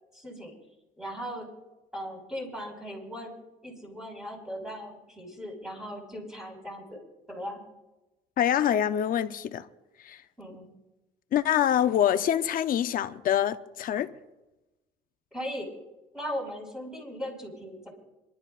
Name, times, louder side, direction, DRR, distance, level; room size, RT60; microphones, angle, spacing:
voice 1, 0.1-0.5 1.0-1.5 1.9-3.4 3.6-7.0 7.3-7.6 10.4-10.7 15.3-15.7 16.1-17.9, equal, 5° right, 5.2 m, -38 dB
voice 2, 8.4-9.7 10.0-10.2 11.3-14.1, left 10 dB, 55° left, 0.7 m, -25 dB
26.5 x 12.0 x 2.5 m
cardioid pair, 110°, 17 cm